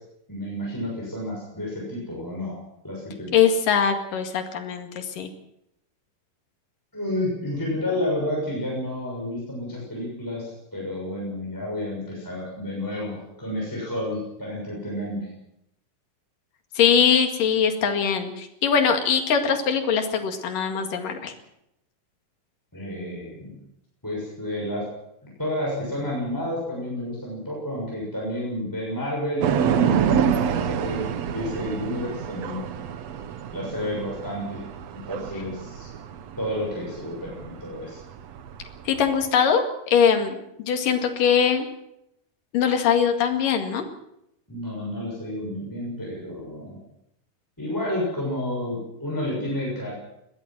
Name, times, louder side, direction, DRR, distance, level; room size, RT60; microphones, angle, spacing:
voice 1, 0.3-2.6 2.8-3.4 6.9-15.3 22.7-23.5 24.0-24.9 25.2-32.6 33.5-34.6 35.1-35.9 36.4-38.0 44.5-46.8 47.6-49.9, left 1 dB, 5° left, -4 dB, 6.4 m, -30 dB
voice 2, 3.3-5.3 16.8-21.3 38.9-41.7 42.5-43.9, left 7 dB, 70° left, 5 dB, 3.7 m, -22 dB
sound 1, 29.4-39.2, right 8 dB, 60° right, 1.9 m, -27 dB
21.5 x 16.5 x 7.6 m, 0.80 s
omnidirectional pair, 4.0 m